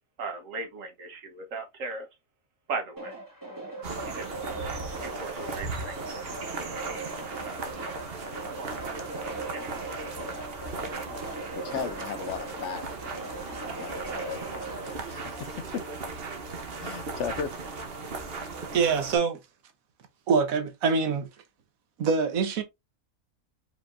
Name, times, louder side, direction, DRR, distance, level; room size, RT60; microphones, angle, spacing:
voice 1, 0.2-2.1 2.7-3.2 4.1-4.3 5.0-6.0 7.4-7.6 8.5-8.7 9.2-9.8, right 4 dB, 70° right, 1.5 m, -37 dB
sound 1, 3.0-15.0, right 2 dB, 15° right, 2.0 m, -39 dB
sound 2, 3.8-19.2, right 3 dB, 50° right, 1.1 m, -37 dB
voice 2, 11.5-13.0 13.2-13.4 13.7-14.4 14.8-15.8 16.8-17.5, left 7 dB, 65° left, 0.9 m, -36 dB
voice 3, 18.7-19.4 20.3-21.3 22.0-22.6, right 5 dB, 90° right, 1.3 m, -24 dB
5.0 x 3.9 x 2.6 m
omnidirectional pair, 1.4 m